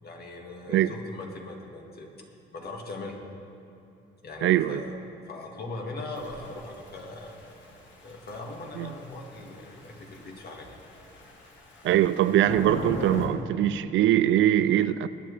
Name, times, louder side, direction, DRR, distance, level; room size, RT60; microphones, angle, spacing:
voice 1, 0.0-2.1 2.5-3.2 4.2-5.0 5.2-7.4 8.0-10.8, left 2 dB, 50° left, 2.1 m, -40 dB
voice 2, 4.4-4.8 8.8-8.9 11.8-15.1, right 12 dB, 75° right, 0.5 m, -22 dB
Thunder / Rain, 6.1-13.3, left 2 dB, 70° left, 2.2 m, -40 dB
21.0 x 9.6 x 3.4 m
cardioid pair, 90°, 20 cm